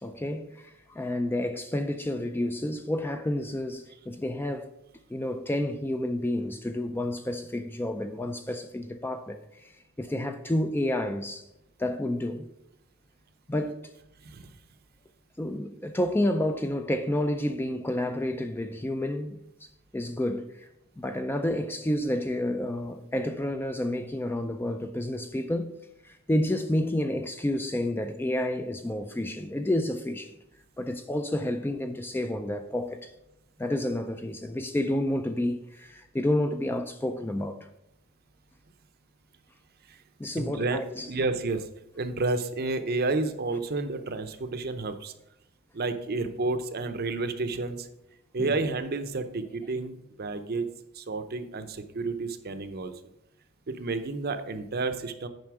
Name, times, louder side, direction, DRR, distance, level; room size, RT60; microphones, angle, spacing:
voice 1, 0.0-4.7 5.1-9.7 10.0-11.5 11.8-12.5 13.5-13.8 15.4-20.7 21.0-25.7 26.0-30.4 30.8-33.1 33.6-37.7 40.2-41.1 48.4-48.6, left 1 dB, 10° left, 0.3 m, -30 dB
voice 2, 40.4-40.8 41.1-41.7 42.0-45.1 45.7-47.9 48.3-50.7 50.9-52.9 53.7-55.3, right 3 dB, 45° right, 0.6 m, -30 dB
9.3 x 5.3 x 4.8 m
head